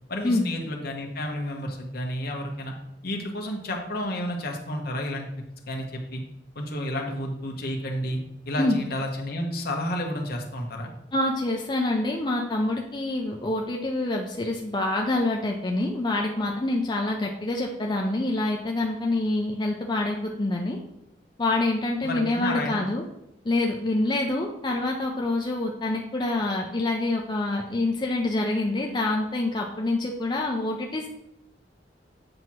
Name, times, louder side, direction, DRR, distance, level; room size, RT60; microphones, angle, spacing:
voice 1, 0.1-2.7 3.0-5.3 5.7-6.2 6.5-8.2 8.5-10.9 22.0-22.8, left 1 dB, 55° left, 1 dB, 1.2 m, -31 dB
voice 2, 11.1-20.8 21.4-23.0 23.4-31.1, left 2 dB, 25° left, 0 dB, 0.5 m, -26 dB
7.7 x 2.9 x 6.0 m, 0.84 s
head